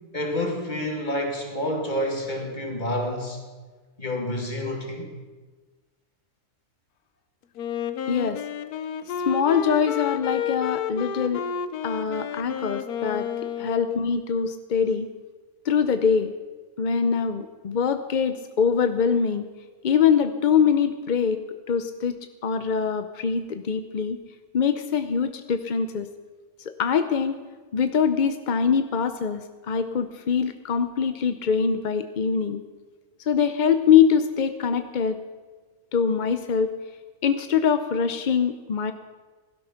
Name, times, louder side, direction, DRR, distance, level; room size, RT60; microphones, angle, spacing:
voice 1, 0.1-3.4 4.0-5.1, left 1 dB, 30° left, 2 dB, 2.3 m, -28 dB
Wind instrument woodwind instrument, 7.6-14.3, left 8 dB, 80° left, 1.3 m, -31 dB
voice 2, 8.1-8.4 9.3-11.5 11.8-13.3 13.6-15.1 15.6-16.3 16.8-19.4 19.8-21.4 21.7-24.2 24.5-26.1 26.6-27.4 27.7-32.6 33.3-35.2 35.9-36.7 37.2-38.9, left 7 dB, 50° left, 9 dB, 0.5 m, -23 dB
16.5 x 12.5 x 5.8 m, 1.4 s
omnidirectional pair, 1.6 m